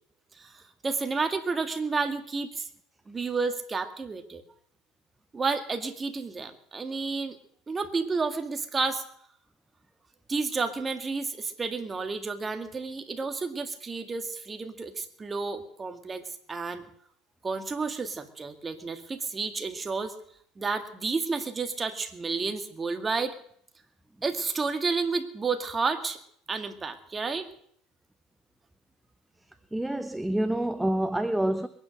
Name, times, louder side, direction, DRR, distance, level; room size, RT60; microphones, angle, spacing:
voice 1, 0.4-2.7 3.1-4.4 5.3-7.4 7.7-9.0 10.3-16.2 16.5-16.8 17.4-20.1 20.6-23.3 24.2-26.2 26.5-27.5, right 4 dB, 20° right, 2.0 m, -31 dB
voice 2, 29.7-31.7, right 1 dB, 5° right, 0.7 m, -27 dB
22.0 x 9.8 x 6.6 m
supercardioid pair, 110°, 0 cm